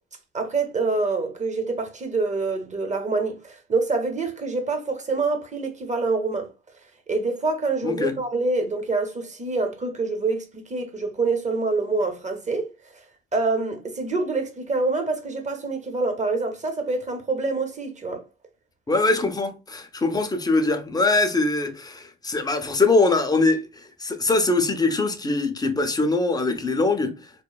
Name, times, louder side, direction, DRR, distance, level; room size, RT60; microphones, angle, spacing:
voice 1, 0.3-6.5 7.1-12.7 13.3-18.2, right 3 dB, 25° right, 0.7 m, -26 dB
voice 2, 7.8-8.1 18.9-27.2, left 3 dB, 15° left, 0.5 m, -22 dB
3.0 x 2.1 x 2.3 m
cardioid pair, 90°, 30 cm